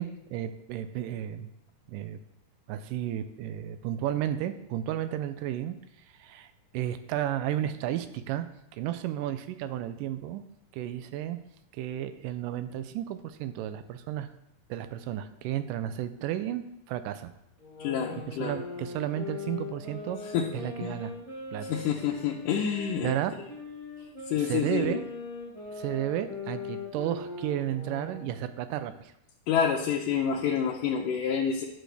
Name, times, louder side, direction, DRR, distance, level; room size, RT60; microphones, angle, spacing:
voice 1, 0.0-1.5 1.9-2.2 2.7-5.8 6.2-8.5 8.7-10.4 10.7-11.4 11.7-14.3 14.7-17.3 18.3-20.2 20.5-21.1 21.5-21.8 23.0-23.3 24.4-25.1 25.8-29.1, right 12 dB, 85° right, 11 dB, 2.2 m, -33 dB
sound 1, 17.6-23.0 23.5-28.3, left 4 dB, 45° left, 0.4 m, -40 dB
voice 2, 17.8-18.6 20.3-20.5 20.8-21.0 21.7-23.2 24.3-25.0 29.5-31.7, left 7 dB, 80° left, -2 dB, 2.3 m, -28 dB
11.0 x 6.3 x 3.4 m, 0.81 s
omnidirectional pair, 3.8 m